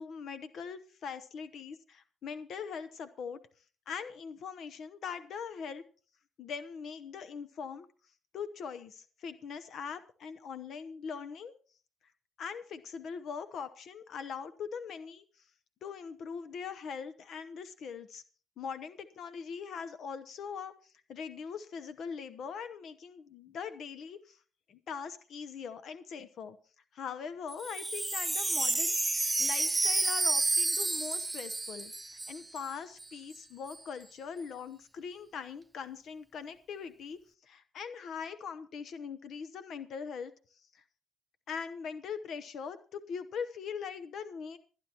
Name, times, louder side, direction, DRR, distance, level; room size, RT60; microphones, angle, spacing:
voice 1, 0.0-3.4 3.9-5.8 6.4-7.9 8.3-11.5 12.4-15.2 15.8-18.2 18.6-24.4 24.7-26.6 26.9-40.3 40.7-40.8 41.5-44.6, left 6 dB, 70° left, 12 dB, 0.8 m, -41 dB
Wind chime, 27.5-32.7 33.0-33.1 33.3-33.8, right 2 dB, 15° right, 0.8 m, -30 dB
27.5 x 9.9 x 2.9 m, 0.38 s
cardioid pair, 90°, 0 cm